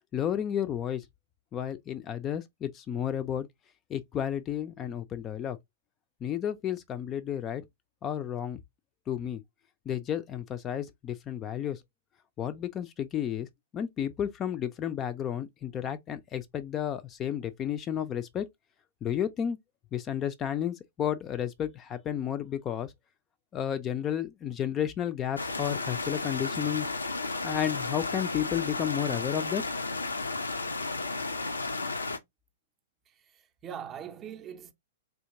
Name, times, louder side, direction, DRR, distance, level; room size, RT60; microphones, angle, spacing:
voice 1, 0.1-1.0 1.5-3.5 3.9-5.6 6.2-7.6 8.0-8.6 9.1-9.4 9.9-11.8 12.4-13.5 13.7-18.5 19.0-19.6 19.9-22.9 23.5-26.9 27.4-29.6, left 10 dB, 25° left, 0.4 m, -32 dB
sound 1, 25.4-32.2, left 3 dB, 80° left, 0.5 m, -33 dB
voice 2, 33.1-34.7, right 8 dB, 25° right, 0.5 m, -42 dB
3.5 x 2.8 x 2.6 m
figure-of-eight pair, 110°, 0 cm